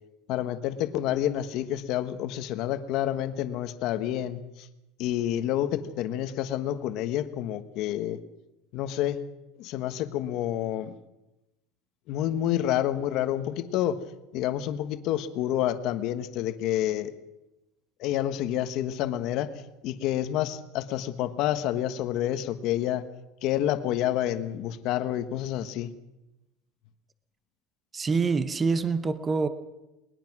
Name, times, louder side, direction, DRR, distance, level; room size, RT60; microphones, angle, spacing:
voice 1, 0.3-4.7 5.0-8.2 8.7-9.2 9.6-11.0 12.1-14.0 14.3-17.1 18.0-19.5 19.8-23.0 23.4-25.9, left 12 dB, 45° left, 10 dB, 1.3 m, -28 dB
voice 2, 27.9-29.5, right 4 dB, 15° right, 12 dB, 0.8 m, -26 dB
20.5 x 20.5 x 6.1 m, 0.97 s
cardioid pair, 170°, 0 cm